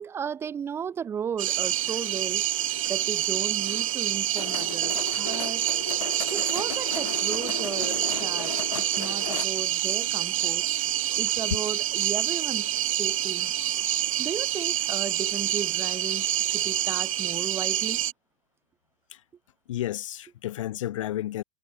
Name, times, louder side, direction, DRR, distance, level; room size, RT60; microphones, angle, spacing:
voice 1, 0.0-2.5 2.9-5.7 6.3-10.7 11.2-12.7 13.0-13.6 14.2-18.0, right 7 dB, 15° right, 1.9 m, -35 dB
sound 1, 1.4-18.1, right 12 dB, 80° right, 1.0 m, -27 dB
sound 2, 4.4-9.5, left 10 dB, 90° left, 5.2 m, -36 dB
voice 2, 19.7-21.4, left 13 dB, 70° left, 1.8 m, -32 dB
supercardioid pair, 165°, 17 cm